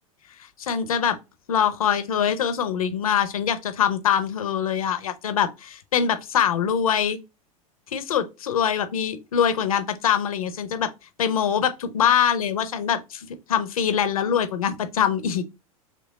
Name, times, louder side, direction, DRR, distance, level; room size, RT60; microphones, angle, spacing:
voice 1, 0.6-1.2 1.5-7.2 7.9-10.9 11.2-15.4, left 8 dB, 70° left, 0.6 m, -23 dB
3.0 x 2.3 x 3.9 m
figure-of-eight pair, 85°, 19 cm